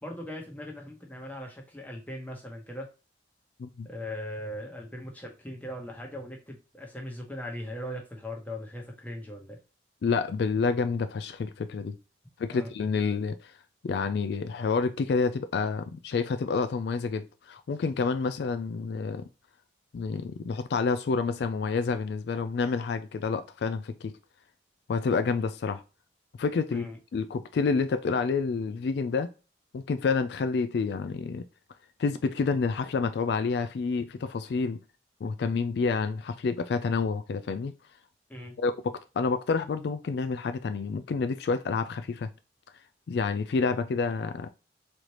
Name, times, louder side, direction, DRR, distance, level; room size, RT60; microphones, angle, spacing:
voice 1, 0.0-2.9 3.8-9.6 12.5-12.7 26.7-27.0 38.3-38.6, left 1 dB, 10° left, 1.0 m, -39 dB
voice 2, 10.0-12.0 12.4-13.5 13.8-19.3 19.9-24.1 24.9-25.8 26.4-29.3 29.7-31.4 32.0-34.8 35.2-37.7 38.6-42.3 43.1-44.5, left 4 dB, 65° left, 0.3 m, -28 dB
4.0 x 3.2 x 2.9 m
head